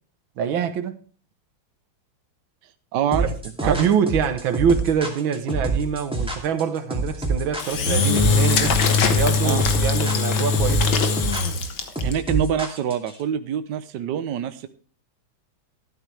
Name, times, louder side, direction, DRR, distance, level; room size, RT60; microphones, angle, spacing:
voice 1, 0.4-1.0 3.2-3.3 3.6-8.8 9.1-11.0, right 7 dB, 90° right, 1.9 m, -24 dB
voice 2, 2.9-3.9 9.4-9.6 12.0-14.7, right 9 dB, 65° right, 1.4 m, -26 dB
sound 1, 3.1-13.2, right 2 dB, 5° right, 2.5 m, -26 dB
Engine / Drill, 7.6-12.1, left 4 dB, 85° left, 2.1 m, -21 dB
13.0 x 12.5 x 3.3 m
omnidirectional pair, 2.1 m